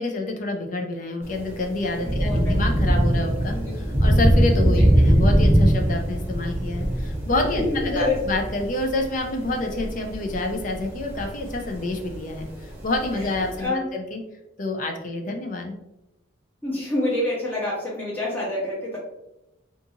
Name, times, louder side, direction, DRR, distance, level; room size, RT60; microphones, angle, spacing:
voice 1, 0.0-3.5 4.0-12.5 12.8-14.2 14.6-15.7, left 2 dB, 40° left, 3 dB, 0.4 m, -28 dB
Thunder / Rain, 1.2-13.6, right 1 dB, 10° right, 0.5 m, -22 dB
voice 2, 2.0-2.6 3.5-3.7 4.8-4.9 7.5-8.2 13.2-13.3 13.6-13.8 16.6-19.0, left 1 dB, 10° left, -7 dB, 0.8 m, -27 dB
2.6 x 2.4 x 2.7 m, 0.89 s
head